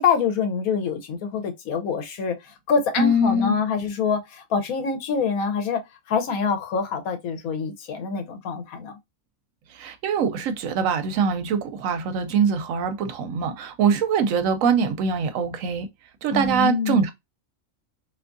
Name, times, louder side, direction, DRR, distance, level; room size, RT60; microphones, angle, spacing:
voice 1, 0.0-5.8 6.1-9.0 16.3-17.1, left 5 dB, 90° left, 1.2 m, -25 dB
voice 2, 3.0-3.6 9.7-15.9 16.2-17.1, right 4 dB, 70° right, 1.0 m, -23 dB
3.4 x 2.7 x 2.5 m
omnidirectional pair, 1.5 m